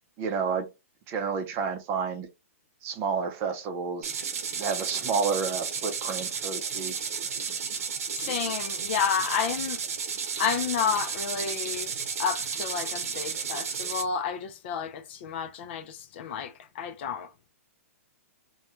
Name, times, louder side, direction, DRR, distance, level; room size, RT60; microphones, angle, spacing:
voice 1, 0.2-0.7 1.1-2.3 2.8-4.2 4.5-7.0, right 5 dB, 30° right, 0.6 m, -30 dB
sound 1, 4.0-14.0, right 6 dB, 75° right, 0.7 m, -33 dB
voice 2, 8.2-9.8 10.4-11.9 12.2-17.5, left 7 dB, 45° left, 0.5 m, -31 dB
2.2 x 2.2 x 3.0 m
hypercardioid pair, 140°, 8 cm